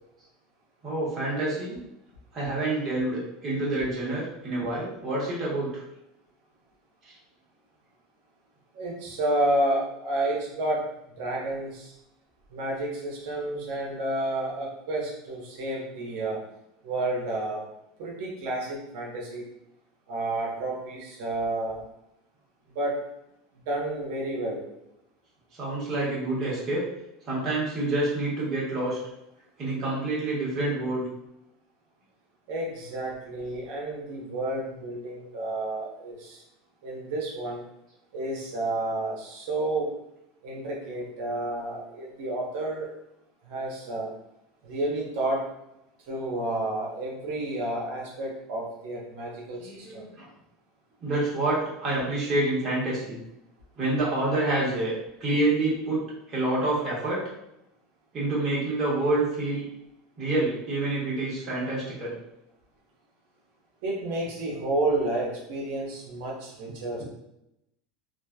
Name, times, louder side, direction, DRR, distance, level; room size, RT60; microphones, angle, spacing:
voice 1, 0.8-1.8 2.3-5.7 25.6-26.8 27.3-29.0 29.6-31.0 49.6-50.3 51.0-53.2 53.8-54.9 55.2-56.0 56.3-57.2 58.1-59.6 60.2-62.1, right 2 dB, 35° right, -6 dB, 1.4 m, -27 dB
voice 2, 8.7-10.9 11.2-11.9 12.5-16.4 16.8-17.6 18.0-19.4 20.1-21.8 22.7-22.9 23.7-24.6 32.5-36.4 36.8-37.6 38.1-39.9 40.4-42.9 43.4-44.1 44.6-45.4 46.1-50.1 63.8-67.0, right 1 dB, 75° right, -3 dB, 0.9 m, -30 dB
3.1 x 2.4 x 2.2 m, 0.83 s
supercardioid pair, 125°, 0 cm